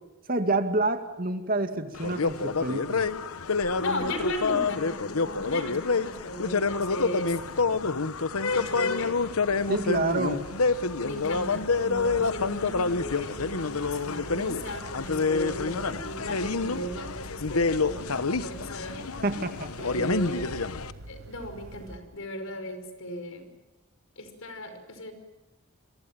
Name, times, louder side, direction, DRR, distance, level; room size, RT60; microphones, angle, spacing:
voice 1, 0.3-3.1 9.7-10.4 19.2-19.7, right 2 dB, 40° right, 7 dB, 2.3 m, -28 dB
sound 1, 2.0-20.9, left 4 dB, 85° left, 1.1 m, -28 dB
voice 2, 3.8-8.0 8.5-9.2 11.0-19.0 19.8-20.4 21.1-23.5 24.2-25.1, equal, 70° left, 9 dB, 5.2 m, -36 dB
sound 2, 6.7-22.0, right 1 dB, 60° right, 5.5 m, -47 dB
28.5 x 23.5 x 7.5 m, 1.1 s
head